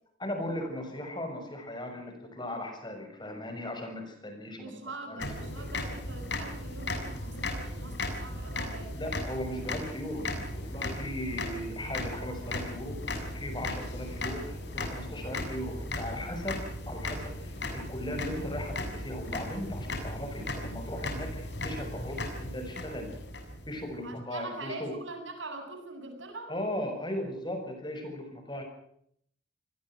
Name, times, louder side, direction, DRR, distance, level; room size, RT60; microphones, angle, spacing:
voice 1, 0.2-4.8 5.1-5.3 5.6-5.7 8.9-23.1 23.7-24.9 26.5-28.6, left 1 dB, 25° left, 5 dB, 6.7 m, -37 dB
voice 2, 4.6-9.0 24.0-26.5, right 2 dB, 80° right, 5 dB, 7.9 m, -43 dB
sound 1, 5.2-23.9, left 2 dB, 60° left, 6.8 m, -36 dB
28.0 x 20.5 x 6.2 m, 0.69 s
head